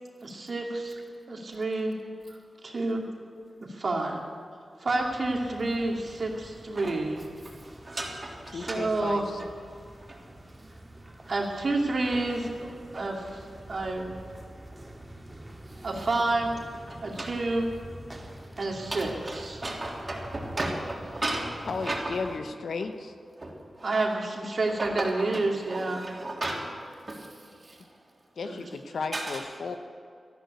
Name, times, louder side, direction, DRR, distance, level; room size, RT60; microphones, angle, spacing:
voice 1, 0.2-1.0 1.3-2.0 2.3-2.4 2.6-3.1 3.6-4.2 4.8-7.2 8.5-9.2 11.3-13.4 13.7-14.1 15.8-16.5 17.0-17.7 18.6-19.6 23.8-26.0 28.4-28.6, right 2 dB, 60° right, 0 dB, 2.6 m, -29 dB
sound 1, 4.9-22.4, right 1 dB, 20° right, 2.2 m, -47 dB
voice 2, 7.8-8.8 10.1-10.2 12.1-12.2 13.0-13.1 16.9-17.4 18.8-22.2 23.4-24.0 24.8-26.7 27.0-27.3 27.6-27.9 29.1-29.4, right 1 dB, 35° right, -1 dB, 3.4 m, -35 dB
voice 3, 8.5-9.4 21.7-23.1 28.4-29.8, left 4 dB, 80° left, 8 dB, 0.9 m, -34 dB
13.5 x 11.5 x 8.2 m, 2.2 s
cardioid pair, 60°, 0 cm